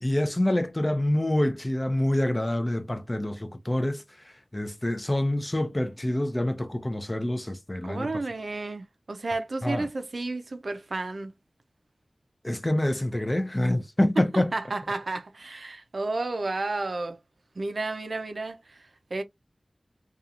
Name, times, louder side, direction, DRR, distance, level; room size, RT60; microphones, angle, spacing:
voice 1, 0.0-8.1 9.6-9.9 12.4-14.5, left 1 dB, 25° left, 0.5 m, -26 dB
voice 2, 7.8-11.3 14.2-17.2 17.6-19.2, right 2 dB, 75° right, 0.4 m, -32 dB
2.8 x 2.3 x 2.4 m
wide cardioid pair, 55°, 0 cm